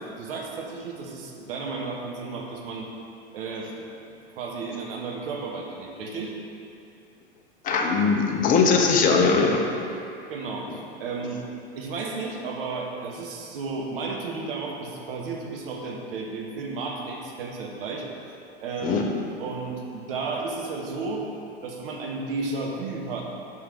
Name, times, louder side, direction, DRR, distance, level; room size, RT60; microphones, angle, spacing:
voice 1, 0.2-2.9 3.3-3.7 4.0-6.3 10.3-11.4 11.8-18.1 18.6-21.2 21.6-23.2, right 4 dB, 60° right, 0 dB, 1.2 m, -33 dB
voice 2, 7.6-9.6 18.8-19.1, left 5 dB, 25° left, 1 dB, 0.7 m, -20 dB
5.6 x 4.9 x 4.6 m, 2.6 s
hypercardioid pair, 95°, 32 cm